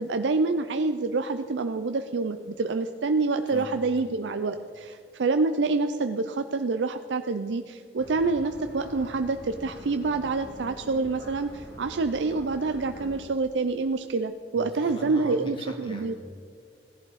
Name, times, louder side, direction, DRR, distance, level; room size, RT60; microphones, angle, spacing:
voice 1, 0.0-16.1, right 3 dB, 85° right, 8 dB, 0.5 m, -27 dB
voice 2, 3.5-3.8 14.5-16.2, equal, 30° left, 2 dB, 2.1 m, -41 dB
sound 1, 8.0-13.2, left 1 dB, 55° left, 3.3 m, -44 dB
16.5 x 11.5 x 4.1 m, 2.3 s
head